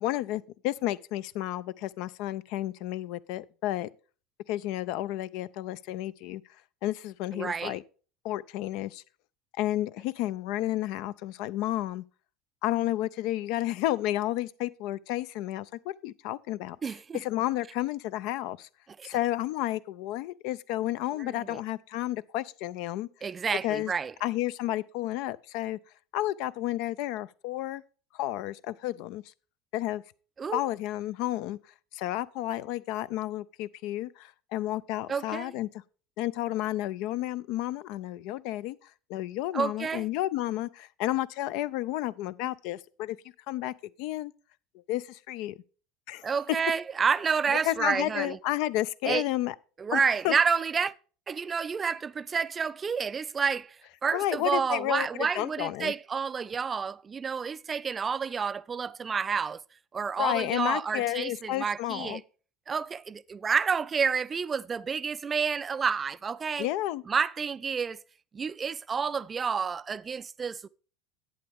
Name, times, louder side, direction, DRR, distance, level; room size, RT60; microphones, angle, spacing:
voice 1, 0.0-3.9 4.5-6.4 6.8-7.8 8.2-9.0 9.6-12.0 12.6-16.8 17.1-18.7 19.0-23.1 23.6-23.9 24.2-25.8 26.1-27.8 28.1-29.2 29.7-30.0 30.5-31.6 31.9-35.7 36.2-43.2 43.5-43.7 44.0-44.3 44.9-45.5 46.1-46.3 47.6-49.5 49.9-50.3 54.1-55.9 60.2-62.2 66.6-67.0, left 15 dB, 55° left, 0.4 m, -31 dB
voice 2, 7.3-7.8 16.8-17.2 19.0-19.1 21.1-21.6 23.2-24.1 30.4-30.6 35.1-35.5 39.5-40.1 46.2-48.4 49.0-49.2 49.8-50.9 51.3-53.8 54.0-59.6 59.9-62.2 62.7-66.7 67.1-68.0 68.3-70.7, right 6 dB, 25° right, 0.4 m, -29 dB
11.0 x 8.4 x 3.5 m
figure-of-eight pair, 70°, 0 cm